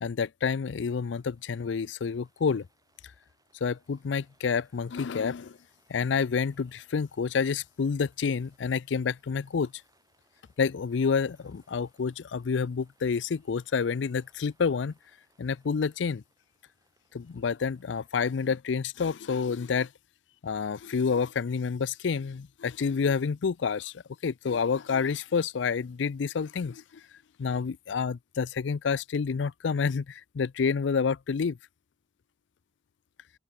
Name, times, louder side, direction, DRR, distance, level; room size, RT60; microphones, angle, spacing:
voice 1, 0.0-2.7 3.6-5.6 5.9-9.7 10.6-14.9 15.4-16.2 17.1-19.9 20.4-23.9 24.2-26.8 27.4-31.6, left 5 dB, 85° left, 0.5 m, -28 dB
Rain, 1.0-18.6, right 3 dB, 20° right, 5.7 m, -70 dB
open air
head